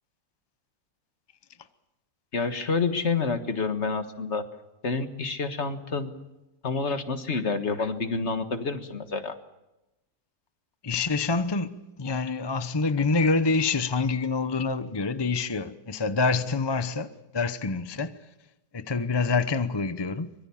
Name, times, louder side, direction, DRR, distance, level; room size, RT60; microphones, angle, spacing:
voice 1, 2.3-4.4 4.8-6.1 6.6-9.4, left 4 dB, 45° left, 1.7 m, -28 dB
voice 2, 10.8-18.2 18.7-20.3, left 4 dB, 25° left, 0.5 m, -26 dB
24.5 x 22.5 x 7.2 m
omnidirectional pair, 1.8 m